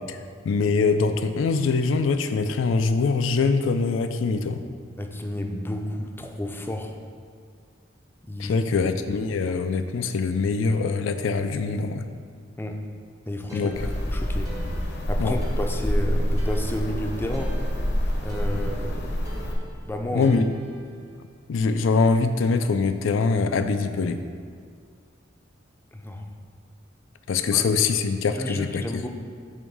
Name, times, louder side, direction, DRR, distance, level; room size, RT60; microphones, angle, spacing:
voice 1, 0.4-4.6 8.4-12.1 13.5-13.9 15.2-15.4 20.1-20.5 21.5-24.2 27.3-29.1, left 4 dB, 80° left, 9 dB, 0.4 m, -23 dB
voice 2, 5.0-7.0 8.2-8.7 9.5-9.6 12.6-12.8 13.3-13.7 14.1-14.5 15.1-17.6 18.2-19.2 19.8-20.3 25.9-26.3 27.5-27.6 28.3-29.1, left 1 dB, 10° left, 3 dB, 0.5 m, -31 dB
sound 1, 13.5-21.2, equal, 20° right, 0.7 m, -44 dB
sound 2, 13.7-19.6, equal, 60° left, 0.8 m, -27 dB
7.2 x 3.1 x 6.1 m, 2.1 s
head